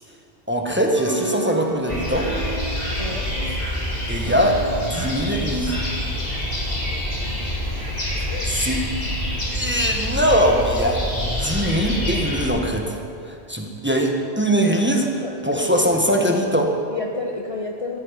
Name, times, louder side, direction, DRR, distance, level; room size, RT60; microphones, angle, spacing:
voice 1, 0.5-2.3 3.5-3.6 4.1-5.8 8.5-8.8 9.5-13.0 13.2-16.7, equal, 10° right, 1 dB, 1.3 m, -21 dB
sound 1, 0.9-6.5, right 2 dB, 35° right, 1.6 m, -34 dB
sound 2, 1.9-12.5, left 1 dB, 55° left, 3.2 m, -27 dB
voice 2, 3.0-3.3 8.3-8.5 15.2-15.9 16.9-18.0, left 3 dB, 35° left, 1 dB, 0.9 m, -31 dB
14.5 x 13.5 x 5.2 m, 2.4 s
omnidirectional pair, 1.1 m